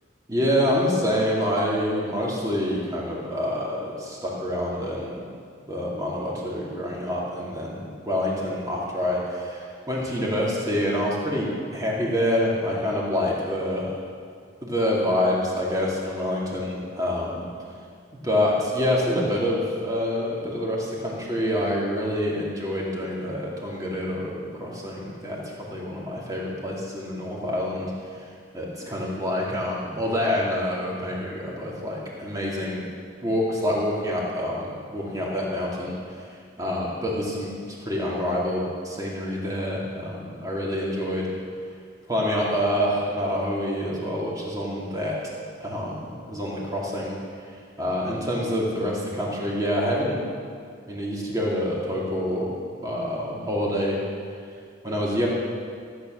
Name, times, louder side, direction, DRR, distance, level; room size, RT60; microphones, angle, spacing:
voice 1, 0.3-5.2 5.7-14.0 14.6-17.5 18.2-27.9 28.5-32.8 33.2-36.0 36.6-41.3 42.1-45.2 45.6-47.2 47.4-50.2 50.9-52.5 52.8-54.0 54.8-55.3, left 1 dB, 20° right, -4 dB, 2.5 m, -27 dB
14.5 x 9.3 x 6.4 m, 2.2 s
head